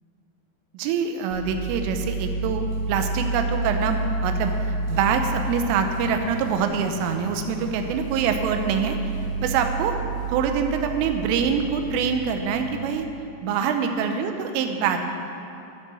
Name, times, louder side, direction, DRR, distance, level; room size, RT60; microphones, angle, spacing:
voice 1, 0.8-9.0 9.4-9.9 10.3-13.1 13.4-15.0, right 6 dB, 90° right, 6 dB, 3.5 m, -25 dB
sound 1, 1.3-12.9, right 3 dB, 65° right, 4.5 m, -30 dB
13.0 x 9.3 x 6.3 m, 2.8 s
omnidirectional pair, 5.6 m